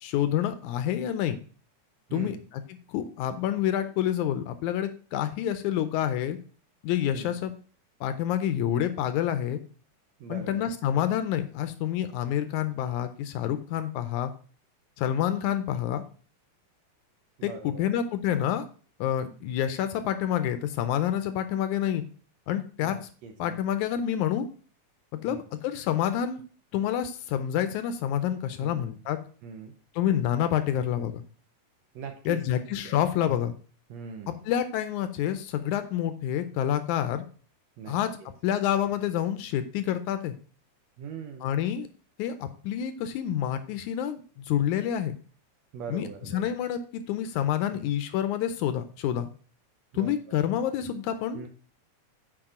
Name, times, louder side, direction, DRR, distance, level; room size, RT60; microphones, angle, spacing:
voice 1, 0.0-1.4 2.1-2.4 2.9-6.4 6.8-7.5 8.0-9.6 10.3-14.3 15.0-16.0 17.4-18.6 19.0-22.0 22.5-23.0 23.4-24.5 25.1-26.4 26.7-29.2 30.0-31.2 32.3-33.5 34.5-37.2 37.9-38.2 38.4-40.3 41.4-41.9 42.2-45.1 45.9-46.1 46.3-49.3 49.9-51.5, left 10 dB, 80° left, 10 dB, 1.9 m, -28 dB
voice 2, 10.2-10.7 17.4-17.9 19.2-19.4 22.8-23.6 25.3-25.4 28.6-28.9 29.4-29.8 32.0-33.0 33.9-34.4 37.8-38.3 41.0-41.5 45.7-46.5 47.7-47.8 49.9-50.4 51.3-51.5, right 6 dB, 75° right, 4 dB, 1.7 m, -41 dB
8.8 x 4.6 x 3.6 m, 0.40 s
omnidirectional pair, 3.7 m